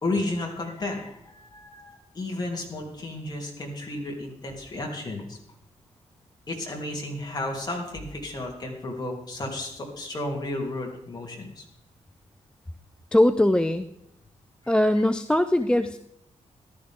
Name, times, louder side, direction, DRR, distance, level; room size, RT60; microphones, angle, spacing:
voice 1, 0.0-5.4 6.5-11.6 14.6-14.8, left 2 dB, 35° left, 0 dB, 2.9 m, -33 dB
voice 2, 13.1-13.9 14.7-16.0, left 1 dB, 5° left, 11 dB, 0.4 m, -21 dB
14.0 x 12.0 x 3.6 m, 0.80 s
wide cardioid pair, 145°, 13 cm